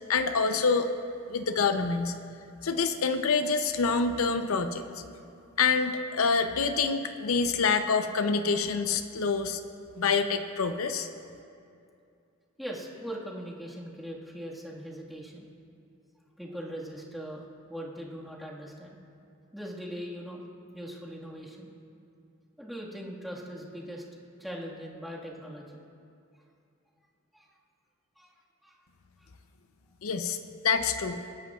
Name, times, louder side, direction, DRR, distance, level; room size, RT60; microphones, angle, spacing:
voice 1, 0.1-0.9 1.3-2.1 2.6-4.8 5.6-9.6 10.0-11.1 30.0-30.4 30.6-31.2, left 5 dB, 80° left, 8 dB, 0.6 m, -26 dB
voice 2, 12.6-15.5 16.4-19.0 19.5-20.5 20.7-21.7 22.6-24.0 24.4-25.8 27.3-27.5 28.2-28.3 28.6-28.8 29.2-29.3, equal, ahead, -5 dB, 1.7 m, -40 dB
27.5 x 11.0 x 2.4 m, 2.5 s
head